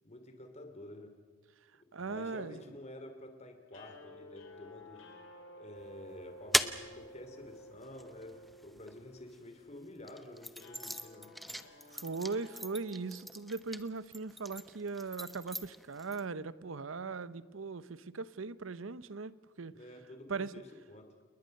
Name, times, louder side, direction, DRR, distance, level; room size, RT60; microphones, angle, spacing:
voice 1, 0.0-1.1 2.0-5.0 5.5-11.4 19.7-21.2, left 1 dB, 35° left, 2.9 m, -50 dB
voice 2, 1.9-2.6 11.9-19.8 20.3-20.5, right 4 dB, 90° right, 0.8 m, -39 dB
sound 1, 3.7-13.9, left 1 dB, 70° left, 3.6 m, -55 dB
sound 2, 5.8-9.4 10.0-16.2, equal, ahead, 0.8 m, -39 dB
29.5 x 21.0 x 6.6 m
head